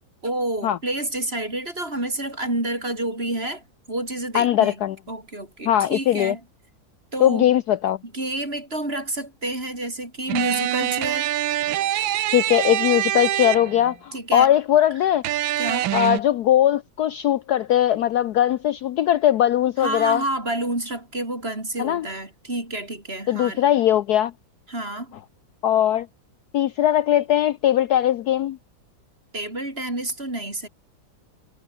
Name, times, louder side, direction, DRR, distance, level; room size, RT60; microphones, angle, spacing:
voice 1, 0.2-4.8 5.1-6.4 7.1-7.5 8.1-11.3 14.1-14.5 15.6-15.9 19.8-23.7 24.7-25.1 29.3-30.7, right 1 dB, 30° right, 5.8 m, -29 dB
voice 2, 4.3-5.0 5.7-6.3 7.2-8.0 12.3-15.2 15.9-20.2 21.8-22.1 23.3-24.3 25.6-26.1 26.5-28.6, left 11 dB, 65° left, 1.1 m, -20 dB
sound 1, 10.3-14.0 15.2-16.2, right 13 dB, 80° right, 1.6 m, -24 dB
omnidirectional pair, 2.1 m